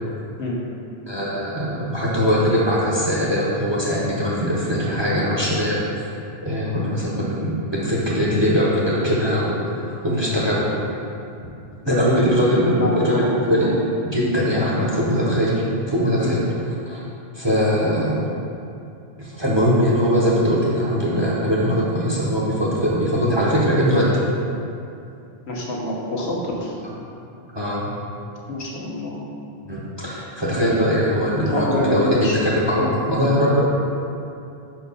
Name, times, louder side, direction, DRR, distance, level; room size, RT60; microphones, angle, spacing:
voice 1, 1.1-6.1 6.4-10.7 11.8-13.8 14.1-16.4 16.9-17.0 17.3-18.2 19.2-24.1 27.5-27.9 29.7-33.6, equal, 25° right, -6 dB, 1.0 m, -21 dB
voice 2, 12.8-13.5 16.2-16.4 25.5-26.8 27.4-27.5 28.5-29.2 31.5-32.4 32.8-32.9, left 1 dB, 80° left, -4 dB, 1.4 m, -26 dB
5.4 x 4.6 x 5.4 m, 2.6 s
omnidirectional pair, 1.1 m